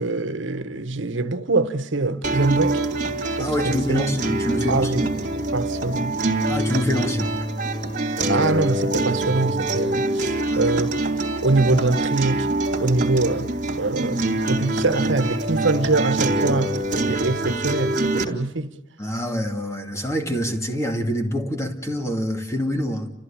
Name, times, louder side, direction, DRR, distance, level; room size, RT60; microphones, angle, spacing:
voice 1, 0.0-2.8 3.4-4.1 4.7-5.0 5.3-6.2 8.2-10.9 11.4-12.5 12.8-13.5 13.8-18.7, right 3 dB, 80° right, 1.2 m, -24 dB
sound 1, 2.2-18.2, right 2 dB, 45° right, 3.1 m, -25 dB
voice 2, 3.4-4.9 6.5-7.3 10.4-10.7 19.0-23.1, equal, 15° left, 2.4 m, -26 dB
30.0 x 14.5 x 8.7 m
head